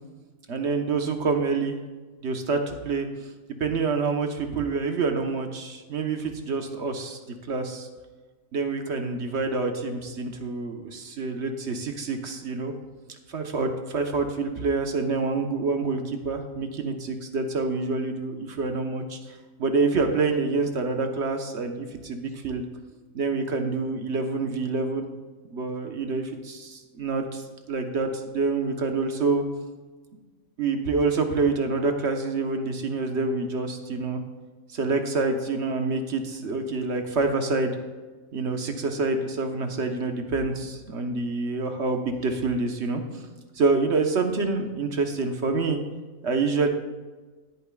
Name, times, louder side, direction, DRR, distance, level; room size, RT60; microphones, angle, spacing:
voice 1, 0.5-1.8 2.2-3.1 3.6-7.2 7.5-7.9 8.5-12.7 13.3-19.2 19.6-22.7 23.1-25.1 25.5-29.4 30.6-34.2 34.7-37.7 38.3-43.3 43.6-45.8 46.2-46.7, right 3 dB, 55° right, 4 dB, 1.4 m, -27 dB
17.0 x 9.0 x 2.4 m, 1.3 s
omnidirectional pair, 1.5 m